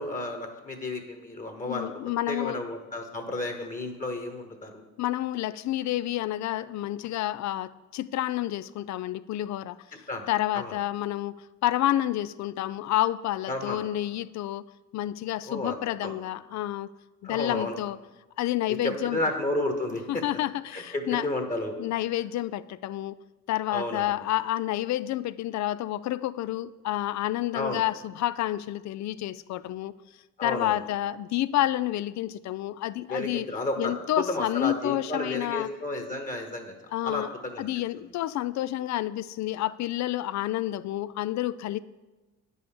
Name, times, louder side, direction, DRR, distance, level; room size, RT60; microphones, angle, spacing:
voice 1, 0.0-1.9 2.3-4.8 10.1-10.3 10.5-10.7 13.5-13.9 15.5-15.8 16.0-16.1 17.2-17.8 18.8-20.2 20.7-21.8 23.7-24.1 27.5-27.8 30.4-30.8 33.1-33.9 34.3-36.7 37.0-37.7, left 2 dB, 25° left, 1.3 m, -32 dB
voice 2, 1.7-2.6 5.0-9.8 10.3-11.4 11.6-14.7 14.9-16.9 17.2-18.0 18.4-19.2 20.1-21.3 21.8-23.2 23.5-29.9 30.4-33.5 33.8-35.7 36.9-37.3 37.6-41.8, left 14 dB, 65° left, 0.4 m, -29 dB
9.0 x 5.5 x 7.0 m
cardioid pair, 90°, 30 cm